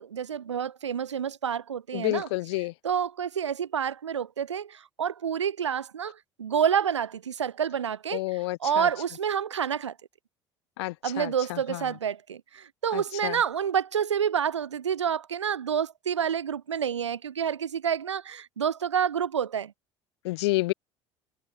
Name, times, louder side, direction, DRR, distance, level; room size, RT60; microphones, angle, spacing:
voice 1, 0.0-2.3 2.8-9.9 11.0-19.7, right 8 dB, 85° right, 0.5 m, -28 dB
voice 2, 1.9-2.7 8.1-8.9 10.8-11.8 12.9-13.4 20.2-20.7, left 21 dB, 65° left, 1.5 m, -30 dB
figure-of-eight pair, 60°, 15 cm